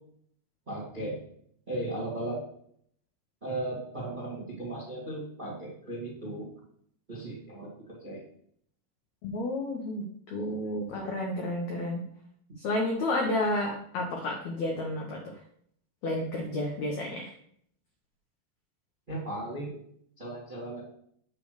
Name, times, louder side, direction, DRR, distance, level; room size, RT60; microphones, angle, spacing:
voice 1, 0.7-1.2 1.7-2.4 3.4-6.4 7.1-8.2 19.1-19.8 20.2-20.8, right 1 dB, 35° right, -4 dB, 0.7 m, -36 dB
voice 2, 9.2-12.0 12.6-15.2 16.0-17.3, left 1 dB, 85° left, 0 dB, 1.6 m, -31 dB
8.4 x 3.2 x 6.4 m, 0.66 s
omnidirectional pair, 4.7 m